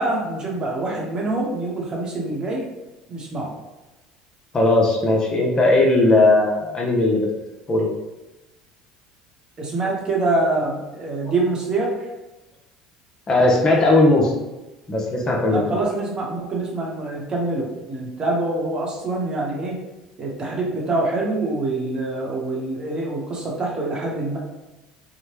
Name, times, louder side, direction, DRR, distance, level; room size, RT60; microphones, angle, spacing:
voice 1, 0.0-2.7 3.1-3.5 9.6-12.1 15.5-19.8 20.2-24.4, right 2 dB, 35° right, -2 dB, 0.9 m, -25 dB
voice 2, 4.5-7.3 7.7-7.9 11.3-11.4 13.3-14.3 14.9-15.8, left 2 dB, 35° left, -1 dB, 0.7 m, -18 dB
2.9 x 2.1 x 3.1 m, 1.0 s
hypercardioid pair, 75°, 2 cm